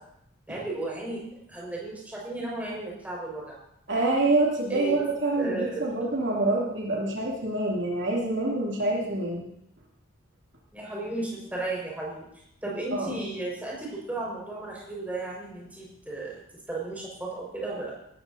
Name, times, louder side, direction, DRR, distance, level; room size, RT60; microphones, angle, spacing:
voice 1, 0.5-1.2 1.5-3.6 4.7-5.0 5.4-5.8 10.7-12.3 12.6-16.4 16.7-17.9, right 2 dB, 5° right, -4 dB, 5.3 m, -34 dB
voice 2, 3.9-9.5 12.9-13.2, right 2 dB, 60° right, -3 dB, 2.9 m, -26 dB
18.5 x 14.0 x 2.8 m, 0.76 s
head